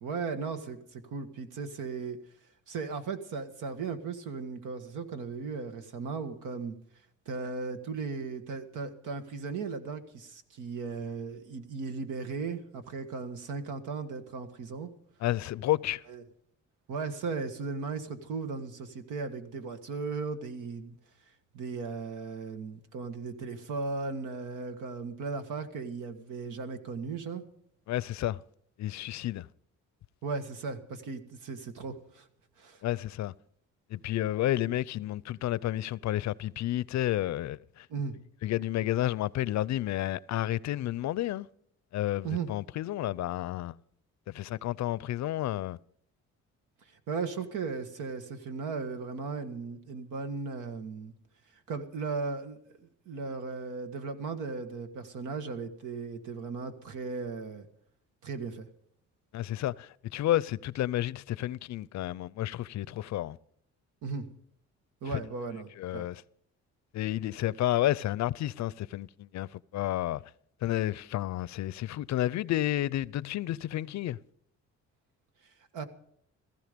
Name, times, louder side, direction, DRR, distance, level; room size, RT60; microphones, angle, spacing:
voice 1, 0.0-2.2 2.7-6.8 7.3-14.9 16.1-16.2 16.9-21.0 21.5-27.4 30.2-32.3 32.6-32.8 37.9-38.2 42.2-42.5 47.1-51.1 51.7-57.7 58.2-58.7 64.0-64.3 65.0-66.1 75.7-75.8, right 4 dB, 85° right, 1.6 m, -36 dB
voice 2, 15.2-16.0 27.9-28.4 28.8-29.5 32.8-33.3 33.9-37.9 38.4-41.5 41.9-43.8 44.3-45.8 59.3-63.4 65.1-65.2 65.8-66.2 66.9-69.5 69.7-70.2 70.6-74.2, left 14 dB, 65° left, 0.5 m, -31 dB
16.0 x 14.5 x 5.2 m
cardioid pair, 90°, 30 cm